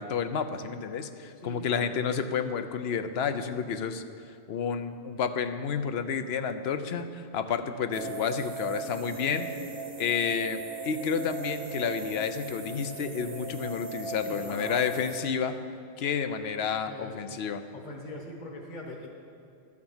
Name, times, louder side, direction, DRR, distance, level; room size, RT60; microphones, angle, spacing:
voice 1, 0.0-4.0 4.5-9.5 10.0-15.6 16.0-17.6, left 6 dB, 70° left, 9 dB, 0.9 m, -30 dB
voice 2, 1.4-1.9 14.3-14.8 16.9-17.3 17.7-19.1, left 1 dB, 45° left, 0 dB, 1.4 m, -41 dB
sound 1, 7.9-15.2, right 3 dB, 70° right, 1.4 m, -38 dB
13.0 x 6.4 x 7.2 m, 2.4 s
omnidirectional pair, 1.1 m